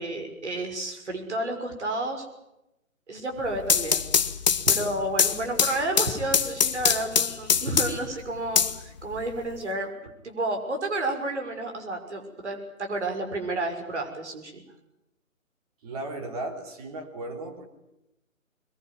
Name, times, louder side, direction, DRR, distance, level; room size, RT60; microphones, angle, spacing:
voice 1, 0.0-2.3 3.1-4.1 4.7-14.6, right 2 dB, 55° right, 4 dB, 6.2 m, -31 dB
sound 1, 3.4-8.1 8.6-9.5, left 7 dB, 30° left, 1.0 m, -24 dB
voice 2, 15.8-17.7, right 2 dB, 25° right, 5 dB, 3.3 m, -36 dB
22.5 x 22.0 x 9.6 m, 0.87 s
figure-of-eight pair, 140°, 41 cm